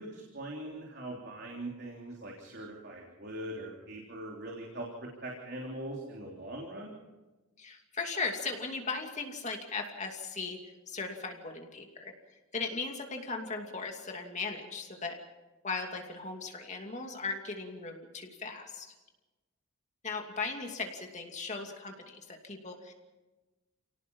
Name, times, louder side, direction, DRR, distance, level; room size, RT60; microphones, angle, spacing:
voice 1, 0.0-6.9, right 1 dB, 50° right, -1 dB, 3.5 m, -41 dB
voice 2, 7.6-12.1 12.5-15.2 15.6-18.9 20.0-22.9, left 4 dB, 35° left, 3 dB, 2.7 m, -38 dB
30.0 x 18.5 x 5.5 m, 1.1 s
head